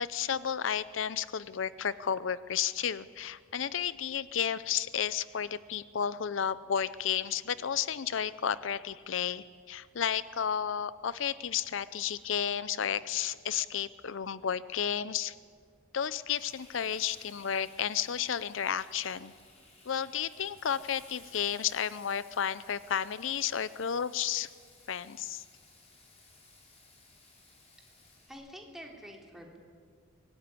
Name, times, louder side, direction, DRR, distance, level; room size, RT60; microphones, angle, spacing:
voice 1, 0.0-15.3 15.9-19.3 19.9-24.5 24.9-25.4, left 8 dB, 70° left, 16 dB, 0.5 m, -32 dB
Frying (food), 16.3-28.3, left 3 dB, 35° left, 6.4 m, -58 dB
voice 2, 28.2-29.6, equal, ahead, 0 dB, 3.5 m, -47 dB
23.5 x 19.0 x 9.8 m, 2.1 s
head